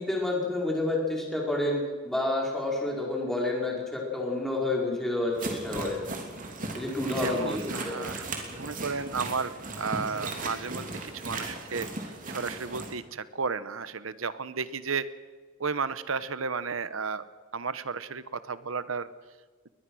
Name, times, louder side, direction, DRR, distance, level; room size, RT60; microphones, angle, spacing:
voice 1, 0.0-6.0 6.7-8.0, left 2 dB, ahead, -2 dB, 5.0 m, -29 dB
sound 1, 5.4-12.9, right 2 dB, 40° right, 3.2 m, -37 dB
voice 2, 7.2-8.3 8.5-15.1 15.6-17.2 17.5-19.1, right 5 dB, 80° right, 14 dB, 1.1 m, -33 dB
21.5 x 20.5 x 6.4 m, 1.4 s
head